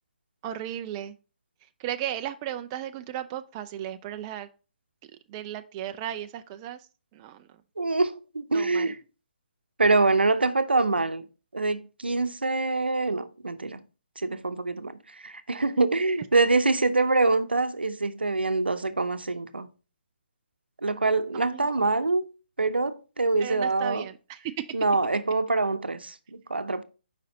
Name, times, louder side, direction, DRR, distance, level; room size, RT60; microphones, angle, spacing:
voice 1, 0.4-1.2 1.8-4.5 5.3-6.9 7.1-7.5 8.5-8.9 21.3-21.7 23.4-24.7, right 11 dB, 25° right, 0.3 m, -35 dB
voice 2, 7.8-9.0 9.8-11.2 11.5-13.8 14.2-19.7 20.8-22.3 22.6-24.0 24.7-26.8, right 3 dB, 85° right, 0.7 m, -25 dB
6.5 x 5.1 x 2.8 m
figure-of-eight pair, 145°, 5 cm